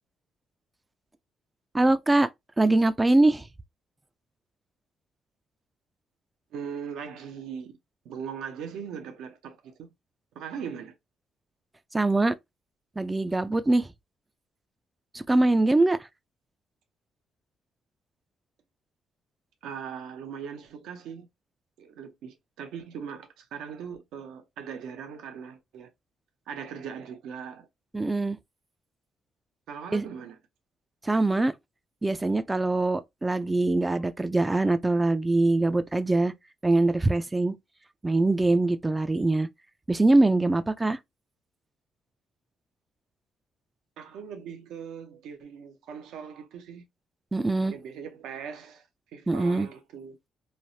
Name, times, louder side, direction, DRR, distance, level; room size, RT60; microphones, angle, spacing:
voice 1, 1.7-2.3 2.6-3.5 11.9-12.4 13.0-13.9 15.1-16.1 27.9-28.4 29.9-30.0 31.0-31.5 32.0-36.3 36.6-37.5 38.0-39.5 39.9-41.0 47.3-47.7 49.3-49.7, right 2 dB, 15° right, 0.3 m, -23 dB
voice 2, 6.5-7.7 8.0-9.9 10.3-10.9 19.6-21.3 21.8-25.9 26.5-27.7 29.7-30.4 44.0-46.8 47.7-50.2, right 7 dB, 85° right, 0.7 m, -40 dB
3.1 x 2.0 x 2.6 m
cardioid pair, 90°, 0 cm